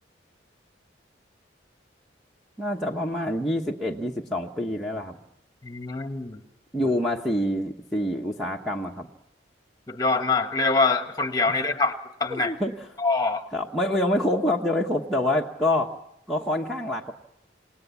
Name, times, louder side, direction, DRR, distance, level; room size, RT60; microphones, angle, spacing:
voice 1, 2.6-5.2 6.7-9.1 11.5-11.6 12.3-12.7 13.5-15.9 16.3-17.1, left 1 dB, ahead, -4 dB, 1.2 m, -26 dB
voice 2, 5.6-6.4 9.9-12.5 13.0-13.4, left 3 dB, 20° left, 7 dB, 1.5 m, -24 dB
28.0 x 19.0 x 7.2 m, 0.75 s
head